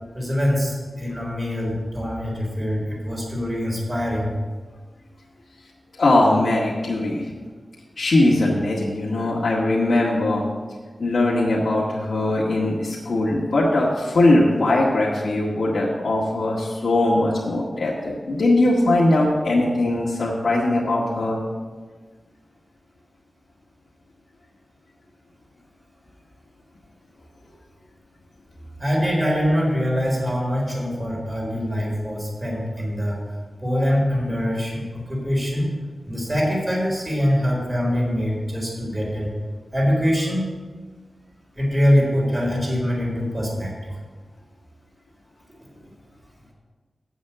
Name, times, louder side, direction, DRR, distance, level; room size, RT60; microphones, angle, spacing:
voice 1, 0.1-4.3 28.8-33.2 33.6-35.7 36.1-39.3 39.7-40.5 41.5-44.0, equal, 20° right, -3 dB, 4.1 m, -23 dB
voice 2, 6.0-7.3 8.0-10.4 11.0-21.4, left 2 dB, 75° left, -7 dB, 1.9 m, -20 dB
8.5 x 7.4 x 7.4 m, 1.4 s
wide cardioid pair, 75°, 0 cm